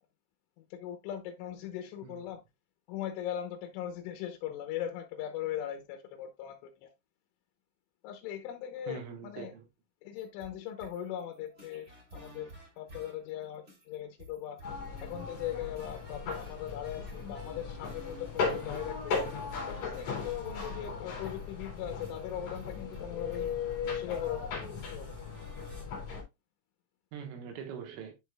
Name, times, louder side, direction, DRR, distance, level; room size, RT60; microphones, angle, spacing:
voice 1, 0.6-2.4 2.9-6.9 8.0-9.5 10.0-12.5 12.8-14.6 15.0-19.2 19.7-23.5 23.9-25.1, left 10 dB, 80° left, 3.2 m, -39 dB
voice 2, 8.9-9.7 27.1-28.1, right 7 dB, 80° right, 3.7 m, -43 dB
sound 1, 10.2-25.8, right 1 dB, 25° right, 1.5 m, -54 dB
sound 2, 14.6-26.2, left 5 dB, 45° left, 2.9 m, -37 dB
10.5 x 4.9 x 2.2 m
omnidirectional pair, 5.9 m